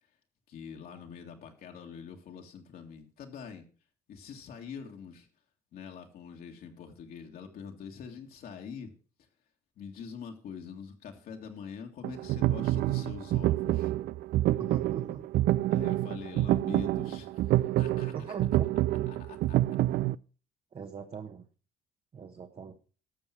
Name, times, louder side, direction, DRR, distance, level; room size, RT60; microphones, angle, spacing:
voice 1, 0.5-3.7 4.1-5.3 5.7-8.9 9.8-13.9 15.7-18.3 19.1-19.6, left 6 dB, 65° left, 2 dB, 2.1 m, -44 dB
sound 1, 12.0-20.2, right 15 dB, 65° right, 0.4 m, -27 dB
voice 2, 14.6-15.2 18.1-18.7 20.7-21.5 22.1-22.7, right 6 dB, 35° right, 5 dB, 1.1 m, -41 dB
12.5 x 6.5 x 5.9 m, 0.38 s
cardioid pair, 110°, 17 cm